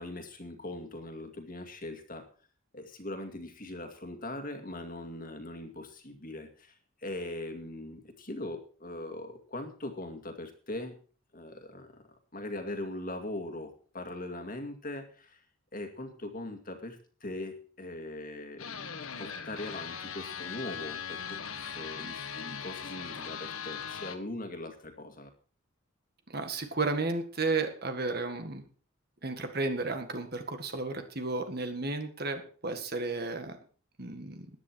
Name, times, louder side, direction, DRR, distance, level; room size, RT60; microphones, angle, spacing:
voice 1, 0.0-2.2 2.7-6.8 7.0-10.9 11.3-12.0 12.3-15.4 15.7-18.9 19.2-25.3, left 1 dB, 40° left, 6 dB, 2.2 m, -41 dB
sound 1, 18.6-24.2, left 7 dB, 80° left, 1.5 m, -39 dB
voice 2, 26.3-28.6 29.2-33.6 34.0-34.5, right 3 dB, 45° right, 7 dB, 1.8 m, -33 dB
14.5 x 10.5 x 4.6 m, 0.40 s
head